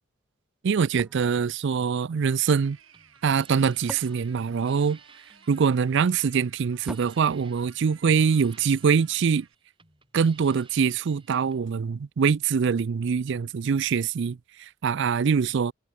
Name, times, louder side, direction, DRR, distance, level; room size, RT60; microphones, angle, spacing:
voice 1, 0.6-2.8 3.2-5.0 5.5-9.5 10.1-15.7, right 6 dB, 60° right, 0.4 m, -24 dB
sound 1, 1.0-2.5 3.4-5.4 6.9-8.5, equal, 5° right, 1.8 m, -45 dB
sound 2, 2.2-9.5, right 7 dB, 80° right, 2.8 m, -56 dB
sound 3, 2.7-11.6, right 5 dB, 25° right, 4.6 m, -57 dB
head